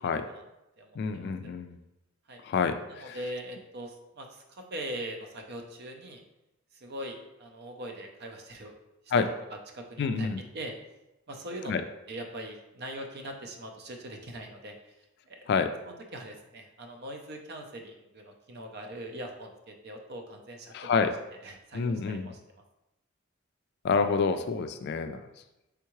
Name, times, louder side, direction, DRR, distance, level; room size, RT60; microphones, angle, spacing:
voice 1, 0.1-0.4 0.8-1.5 2.3-2.4 3.0-6.2 6.7-8.7 9.0-9.1 9.7-10.3 10.5-10.7 11.3-11.7 12.1-15.5 15.9-21.1 21.4-22.4, right 1 dB, 50° right, 3 dB, 0.6 m, -41 dB
voice 2, 1.0-1.8 2.4-3.2 9.1-9.3 10.0-10.4 11.7-11.8 15.5-15.7 20.7-21.1 21.7-22.3 23.8-25.3, left 5 dB, 50° left, 8 dB, 0.3 m, -28 dB
4.6 x 3.5 x 3.0 m, 0.93 s
head